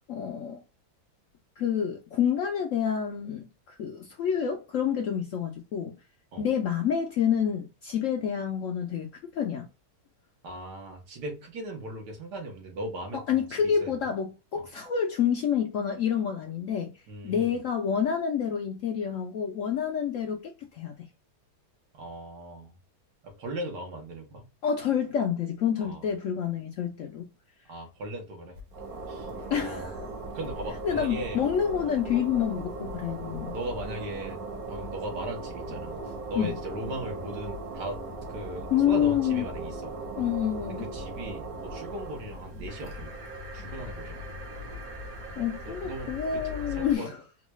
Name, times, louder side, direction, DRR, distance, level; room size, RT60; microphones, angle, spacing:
voice 1, 0.1-0.6 1.6-6.0 6.4-9.7 13.1-16.9 17.2-21.1 24.6-27.3 29.5-30.0 30.8-33.5 36.4-36.5 38.7-39.5 40.2-40.9 45.4-47.2, left 8 dB, 70° left, 0.7 m, -28 dB
voice 2, 10.4-14.1 17.1-17.6 21.9-22.7 23.2-24.5 25.8-26.1 27.7-28.6 29.1-29.3 29.6-29.9 30.3-31.5 32.1-32.3 33.5-34.4 34.7-38.0 38.3-40.0 40.8-43.2 43.5-44.2 45.7-47.1, right 1 dB, 80° right, 1.7 m, -38 dB
sound 1, 28.5-47.0, right 2 dB, 65° right, 1.4 m, -38 dB
3.9 x 2.3 x 3.0 m
omnidirectional pair, 1.8 m